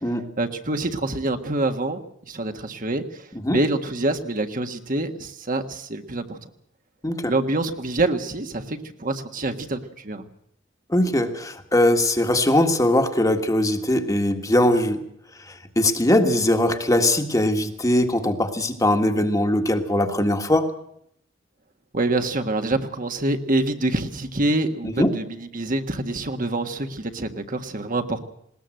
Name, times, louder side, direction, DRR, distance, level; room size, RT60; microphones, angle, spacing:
voice 1, 0.4-6.4 7.3-10.2 21.9-28.2, right 2 dB, 45° right, 6 dB, 1.6 m, -26 dB
voice 2, 10.9-15.0 15.5-20.7 24.8-25.1, left 1 dB, 20° left, 6 dB, 1.7 m, -21 dB
20.0 x 19.0 x 7.8 m, 0.72 s
head